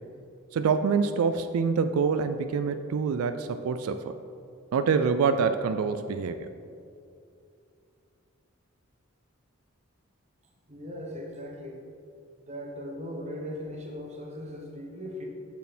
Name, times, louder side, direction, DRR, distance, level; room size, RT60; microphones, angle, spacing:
voice 1, 0.5-4.1 4.7-6.5, right 5 dB, 90° right, 10 dB, 0.3 m, -26 dB
voice 2, 10.7-11.8 12.5-15.3, equal, 30° right, -1 dB, 1.1 m, -38 dB
6.8 x 6.4 x 4.3 m, 2.4 s
head